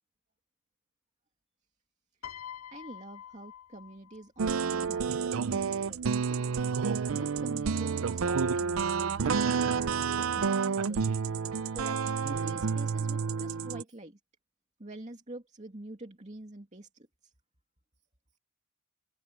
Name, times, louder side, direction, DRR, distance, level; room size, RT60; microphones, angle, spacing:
Piano, 2.2-4.6 5.6-5.9, left 9 dB, 85° left, 2.3 m, -46 dB
voice 1, 2.2-6.4 7.1-11.1 11.7-14.2 14.8-17.3, right 1 dB, 35° right, 2.5 m, -47 dB
sound 1, 4.4-13.8, right 5 dB, 75° right, 0.5 m, -29 dB
open air
head